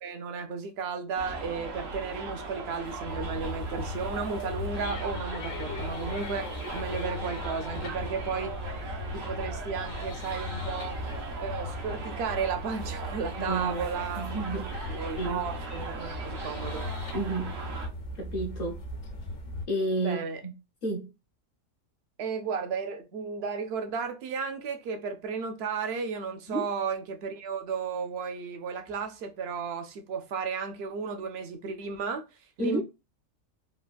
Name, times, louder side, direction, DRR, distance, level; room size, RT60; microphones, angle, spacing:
voice 1, 0.0-8.5 8.9-11.0 11.4-14.3 14.9-16.9 20.0-20.4 22.2-32.2 32.6-32.8, right 5 dB, 65° right, 0.7 m, -34 dB
Subway metro underground, 1.1-17.9, right 3 dB, 85° right, 1.2 m, -39 dB
sound 1, 3.0-19.7, left 1 dB, 75° left, 1.0 m, -38 dB
voice 2, 13.4-13.9 14.2-15.4 17.1-17.6 18.2-18.8 19.7-20.2 20.4-20.5 20.8-21.1 26.5-26.7 32.6-32.8, right 2 dB, 55° left, 0.7 m, -31 dB
3.3 x 2.1 x 2.3 m
omnidirectional pair, 1.3 m